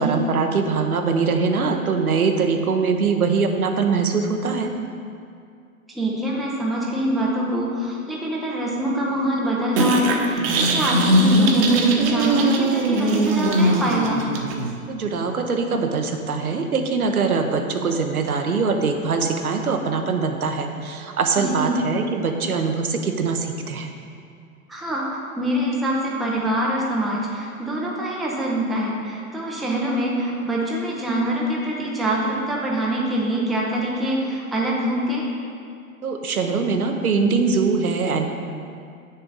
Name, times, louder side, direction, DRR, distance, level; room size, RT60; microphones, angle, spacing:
voice 1, 0.0-4.7 14.9-23.9 36.0-38.3, right 4 dB, 90° right, 4 dB, 1.0 m, -22 dB
voice 2, 5.9-14.2 21.4-21.8 24.7-35.3, right 1 dB, ahead, -4 dB, 0.4 m, -24 dB
sound 1, 9.8-14.8, right 1 dB, 45° right, 1.0 m, -20 dB
8.6 x 6.6 x 4.0 m, 2.3 s
hypercardioid pair, 120°, 43 cm